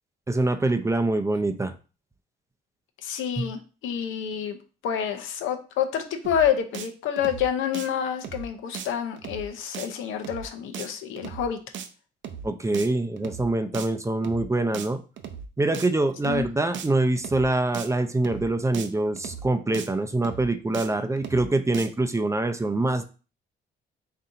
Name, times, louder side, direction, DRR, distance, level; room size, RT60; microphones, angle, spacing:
voice 1, 0.3-1.7 3.4-3.5 12.4-15.0 15.6-23.0, right 2 dB, 15° right, 8 dB, 0.5 m, -25 dB
voice 2, 3.0-4.6 4.8-11.6 16.3-16.5, left 8 dB, 85° left, 7 dB, 0.7 m, -28 dB
sound 1, 6.2-6.5 6.7-6.9 7.2-7.5 7.7-7.9 8.2-8.5 8.7-8.9 9.2-9.5 9.7-9.9 10.2-10.5 10.7-10.9 11.2-11.5 11.7-11.9 12.2-12.5 12.7-12.9 13.2-13.5 13.7-13.9 14.2-14.5 14.7-14.9 15.2-15.5 15.7-15.9 16.2-16.5 16.7-16.9 17.2-17.5 17.7-17.9 18.2-18.5 18.7-18.9 19.2-19.5 19.7-19.9 20.2-20.5 20.7-20.9 21.2-21.5 21.7-21.9, right 7 dB, 70° right, 0.6 m, -37 dB
4.1 x 2.7 x 3.7 m, 0.34 s
cardioid pair, 90°, 20 cm